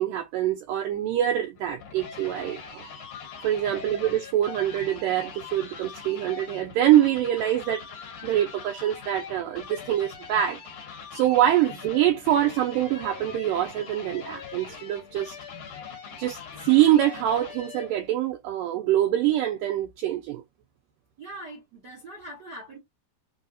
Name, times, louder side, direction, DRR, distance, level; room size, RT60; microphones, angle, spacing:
voice 1, 0.0-2.9 3.4-7.8 8.2-10.6 11.1-15.3 16.2-16.4 16.6-20.4, right 12 dB, 75° right, 2.2 m, -24 dB
sound 1, 1.6-18.1, left 6 dB, 55° left, 2.2 m, -42 dB
voice 2, 21.2-22.8, right 1 dB, 60° right, 1.1 m, -42 dB
5.5 x 2.4 x 2.5 m
omnidirectional pair, 4.2 m